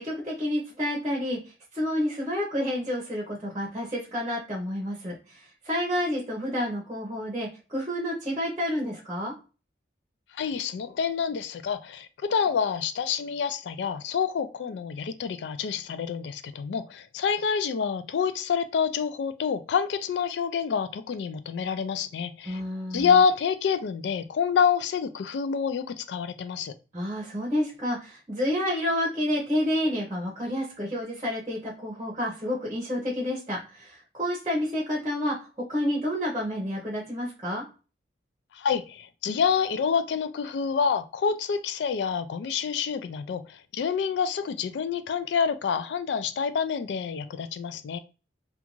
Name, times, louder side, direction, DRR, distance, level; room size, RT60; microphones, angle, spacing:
voice 1, 0.0-1.4 1.7-9.3 22.4-23.2 26.9-35.4 35.7-37.6, left 1 dB, 20° right, 0.7 m, -29 dB
voice 2, 10.4-22.6 22.9-26.8 38.5-48.0, left 6 dB, 75° left, 0.3 m, -27 dB
2.5 x 2.3 x 2.9 m
head